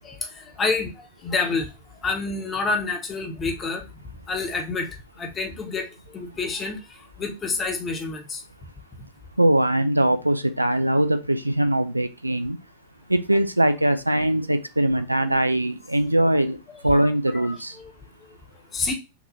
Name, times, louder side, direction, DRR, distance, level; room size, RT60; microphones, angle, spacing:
voice 1, 0.0-0.9 1.2-1.7 2.0-3.8 4.3-4.9 5.2-5.9 6.1-6.8 7.2-8.4 16.2-16.3 16.7-17.0 17.3-17.4 17.8-17.9 18.7-18.9, left 4 dB, 25° left, 4 dB, 1.0 m, -28 dB
voice 2, 9.4-12.6 13.1-16.6 16.8-17.8, right 1 dB, 85° right, 10 dB, 0.4 m, -21 dB
5.9 x 2.8 x 2.7 m, 0.27 s
figure-of-eight pair, 90°, 0 cm